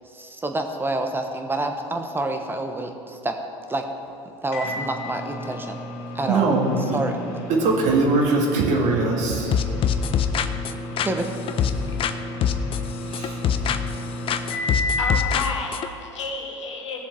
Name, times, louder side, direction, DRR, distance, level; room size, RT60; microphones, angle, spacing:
voice 1, 0.1-3.4 3.7-3.8 4.4-5.8 6.1-6.5 6.9-7.1 11.0-11.3, right 2 dB, 15° right, 4 dB, 1.1 m, -27 dB
Microwave oven, 4.5-15.3, left 1 dB, 55° left, 1.8 m, -32 dB
voice 2, 6.3-7.0 7.5-9.6 13.1-13.4, right 3 dB, 55° right, -1 dB, 2.0 m, -21 dB
sound 1, 9.5-12.1 12.4-14.0 14.3-15.9, left 8 dB, 35° left, 0.6 m, -24 dB
voice 3, 15.0-17.0, left 3 dB, 85° left, 1 dB, 1.4 m, -31 dB
16.5 x 7.0 x 3.5 m, 2.8 s
hypercardioid pair, 75°, 15 cm